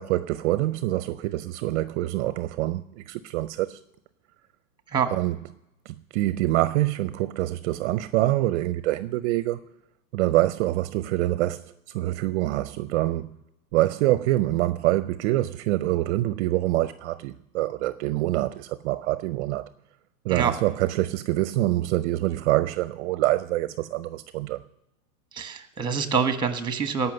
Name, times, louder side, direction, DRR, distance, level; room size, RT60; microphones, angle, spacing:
voice 1, 0.0-3.8 5.1-5.4 5.9-9.6 10.1-13.3 13.7-19.7 20.2-24.6, right 16 dB, 55° right, 0.5 m, -25 dB
voice 2, 25.3-27.1, right 6 dB, 10° right, 1.2 m, -25 dB
17.5 x 5.8 x 7.7 m
supercardioid pair, 135°, 43 cm